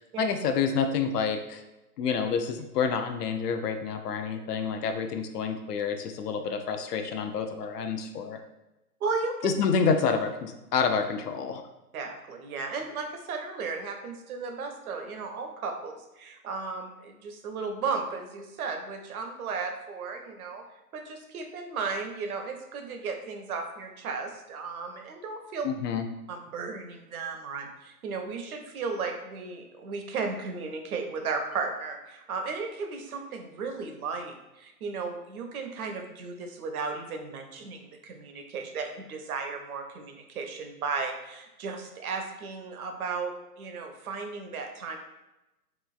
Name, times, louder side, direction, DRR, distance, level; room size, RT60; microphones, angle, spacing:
voice 1, 0.0-1.6 2.0-8.4 9.4-11.6 25.6-26.1, left 6 dB, 80° left, 6 dB, 0.5 m, -28 dB
voice 2, 9.0-9.3 11.9-20.6 20.9-25.7 26.3-45.0, right 4 dB, 65° right, 4 dB, 0.6 m, -35 dB
3.0 x 2.3 x 2.3 m, 0.97 s
hypercardioid pair, 150°, 47 cm